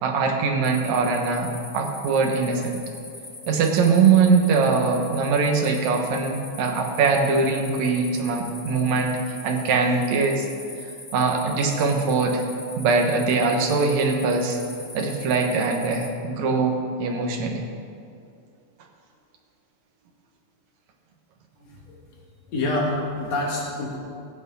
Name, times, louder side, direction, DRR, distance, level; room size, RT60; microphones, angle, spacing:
voice 1, 0.0-2.8 3.5-10.5 11.1-12.4 12.8-14.6 14.9-16.7 17.0-17.6, right 4 dB, 70° right, 2 dB, 2.5 m, -22 dB
sound 1, 0.6-16.1, left 2 dB, 25° left, 0.8 m, -42 dB
voice 2, 21.6-22.0 22.5-24.0, left 2 dB, 60° left, -3 dB, 3.1 m, -27 dB
14.5 x 8.3 x 5.5 m, 2.4 s
omnidirectional pair, 3.5 m